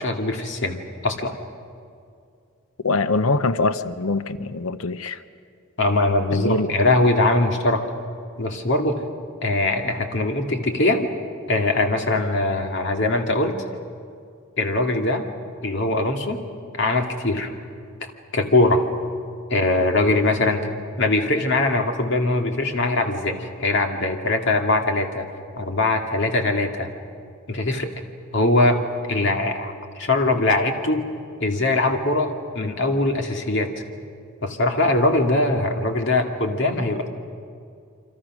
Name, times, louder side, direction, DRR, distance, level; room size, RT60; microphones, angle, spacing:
voice 1, 0.0-1.3 5.8-7.8 8.4-9.0 9.4-11.1 11.5-13.6 14.6-15.2 15.6-16.4 16.7-17.5 18.3-18.8 19.5-20.7 21.0-25.3 25.6-26.9 27.5-27.9 28.3-31.1 31.4-33.7 34.4-37.1, left 2 dB, 55° left, 3 dB, 2.2 m, -21 dB
voice 2, 2.8-5.2 6.3-6.7, left 3 dB, 75° left, 12 dB, 0.7 m, -23 dB
29.0 x 25.0 x 6.2 m, 2.4 s
head